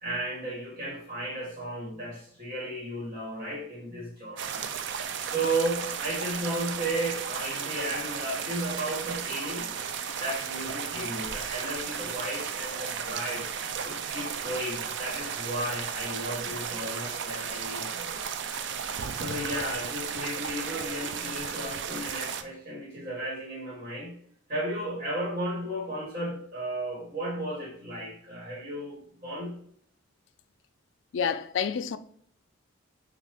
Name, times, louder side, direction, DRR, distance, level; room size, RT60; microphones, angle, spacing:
voice 1, 0.0-4.7 5.3-9.7 10.2-13.5 13.8-18.5 19.1-24.2 24.5-29.6, right 1 dB, 40° right, 1.5 m, -34 dB
sound 1, 4.4-22.4, right 7 dB, 55° right, 0.4 m, -34 dB
voice 2, 31.1-32.0, left 7 dB, 65° left, 0.3 m, -28 dB
6.2 x 2.4 x 3.5 m
head